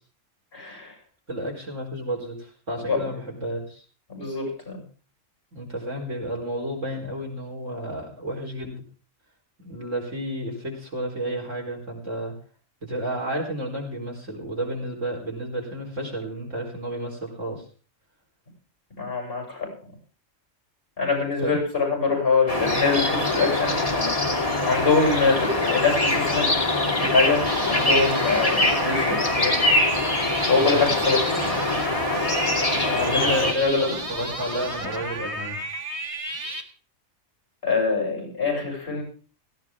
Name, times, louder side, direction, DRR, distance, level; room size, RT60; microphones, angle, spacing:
voice 1, 0.5-0.9 2.9-3.0 4.1-4.8 19.0-19.7 21.0-24.1 24.6-26.6 26.9-29.6 30.5-31.5 32.7-33.3 33.6-33.9 37.6-39.0, left 4 dB, 45° left, 2 dB, 7.3 m, -24 dB
voice 2, 1.3-3.8 5.5-8.8 9.6-12.3 12.8-17.6 21.4-21.6 30.5-30.8 33.0-35.6, right 1 dB, 75° right, -1 dB, 4.4 m, -31 dB
sound 1, 22.5-33.5, left 2 dB, 25° left, 2.9 m, -23 dB
sound 2, 27.5-36.6, right 1 dB, 25° right, 1.7 m, -33 dB
18.0 x 15.0 x 3.6 m, 0.38 s
omnidirectional pair, 1.3 m